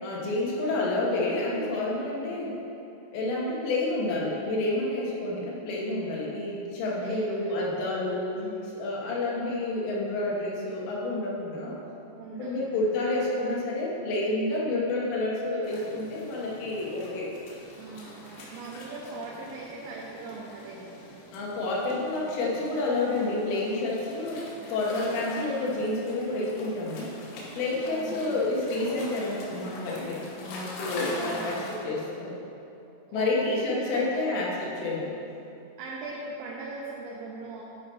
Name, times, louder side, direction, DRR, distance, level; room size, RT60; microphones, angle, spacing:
voice 1, 0.0-2.6 3.1-8.4 8.7-11.8 12.4-17.3 21.3-27.1 27.6-30.2 30.4-31.6 31.8-32.4 33.1-35.2, left 2 dB, 70° left, -4 dB, 3.1 m, -29 dB
voice 2, 0.6-1.0 2.2-2.6 7.0-7.6 8.3-8.8 12.2-12.8 13.2-13.7 17.8-21.0 25.4-25.8 27.8-28.5 31.1-31.9 33.1-34.2 35.8-37.6, right 3 dB, 85° right, -4 dB, 3.5 m, -41 dB
sound 1, 15.6-31.8, left 1 dB, 85° left, 4.0 m, -43 dB
11.0 x 4.9 x 4.4 m, 2.7 s
omnidirectional pair, 5.8 m